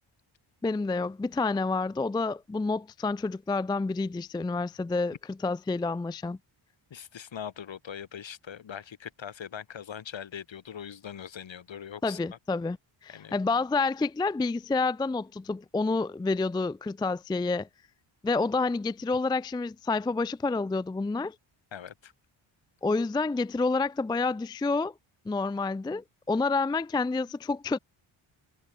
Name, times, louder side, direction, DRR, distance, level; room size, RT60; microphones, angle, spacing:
voice 1, 0.6-6.4 12.0-12.8 13.0-17.7 18.2-21.4 22.8-24.9 25.3-27.8, left 3 dB, 10° left, 0.4 m, -29 dB
voice 2, 6.9-12.2 13.1-13.4 21.7-22.1, left 8 dB, 65° left, 4.8 m, -41 dB
cardioid pair, 90°, 49 cm